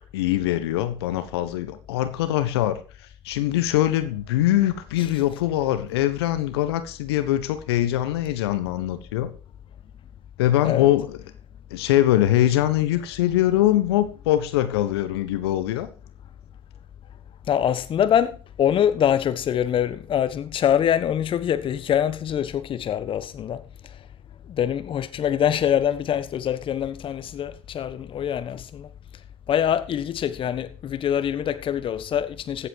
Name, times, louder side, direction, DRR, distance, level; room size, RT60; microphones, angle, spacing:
voice 1, 0.1-9.3 10.4-11.2 11.7-15.9, left 13 dB, 70° left, 1.3 m, -23 dB
voice 2, 17.5-24.0 24.5-28.9 29.5-32.7, left 9 dB, 40° left, 1.3 m, -24 dB
15.0 x 8.3 x 4.7 m
hypercardioid pair, 70°, 14 cm